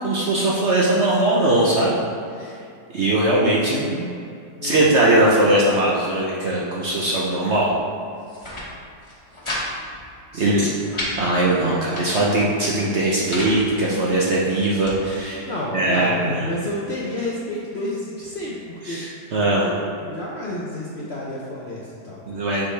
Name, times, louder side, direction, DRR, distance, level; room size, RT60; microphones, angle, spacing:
voice 1, 0.0-1.9 2.4-2.5 2.9-4.1 4.6-7.7 10.3-10.7 11.2-16.3 18.9-19.7 22.3-22.7, right 1 dB, 55° right, -5 dB, 0.8 m, -20 dB
sound 1, 8.2-8.7 9.0-9.6 9.9-10.0 10.4-11.1 11.7-12.3 12.9-13.5 14.2-15.0, left 1 dB, 20° left, 1.2 m, -32 dB
voice 2, 10.3-10.7 15.5-22.5, left 1 dB, 60° left, -5 dB, 0.7 m, -30 dB
7.0 x 4.8 x 3.3 m, 2.5 s
omnidirectional pair, 1.9 m